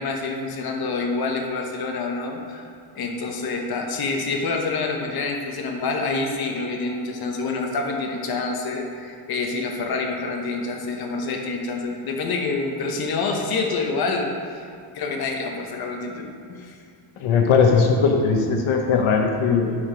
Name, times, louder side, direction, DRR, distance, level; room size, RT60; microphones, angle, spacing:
voice 1, 0.0-2.6 2.9-14.7 14.9-16.8, left 3 dB, 45° left, 2 dB, 1.1 m, -27 dB
voice 2, 17.2-19.8, left 5 dB, 75° left, 2 dB, 1.0 m, -19 dB
11.5 x 4.7 x 5.0 m, 2.3 s
cardioid pair, 165°, 50 cm